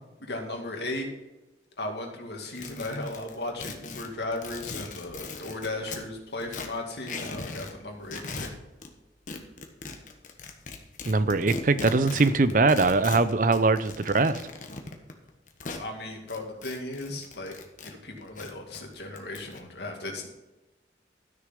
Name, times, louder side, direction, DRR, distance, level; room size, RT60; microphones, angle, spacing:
voice 1, 0.2-1.1 1.8-8.5 15.7-17.5 17.8-20.3, left 2 dB, 70° left, 2 dB, 2.3 m, -36 dB
sound 1, 2.6-6.0 6.4-7.7 8.0-8.9 9.3-15.8 16.3-17.9 18.2-19.6, left 3 dB, 45° left, 1.2 m, -39 dB
voice 2, 11.1-14.4, right 3 dB, 45° right, 13 dB, 0.6 m, -22 dB
13.0 x 6.6 x 5.3 m, 1.0 s
head